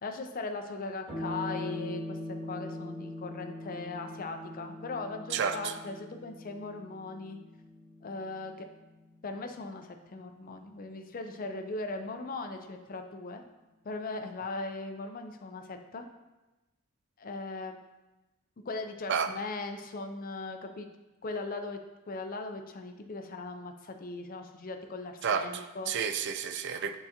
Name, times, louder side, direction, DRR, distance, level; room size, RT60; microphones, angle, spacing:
voice 1, 0.0-7.4 8.0-8.7 9.2-13.4 13.8-16.1 17.2-17.8 18.6-20.9 21.2-21.8 22.1-25.9, left 3 dB, 45° left, 6 dB, 0.5 m, -39 dB
sound 1, 1.1-9.9, left 1 dB, 30° right, 2.2 m, -42 dB
voice 2, 5.3-5.7 19.1-19.3 25.2-26.9, right 6 dB, 55° right, 9 dB, 0.4 m, -31 dB
9.3 x 3.9 x 2.8 m, 1.1 s
head